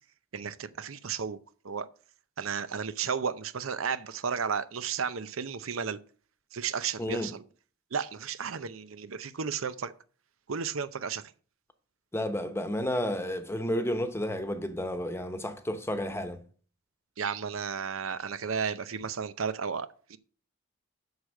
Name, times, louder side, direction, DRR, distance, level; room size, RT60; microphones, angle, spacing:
voice 1, 0.3-1.4 1.6-1.9 2.4-6.0 6.5-7.4 7.9-9.9 10.5-11.2 17.2-20.2, right 6 dB, 85° right, 0.7 m, -33 dB
voice 2, 7.0-7.3 12.1-16.4, left 1 dB, 10° left, 1.0 m, -31 dB
8.0 x 6.5 x 6.4 m
head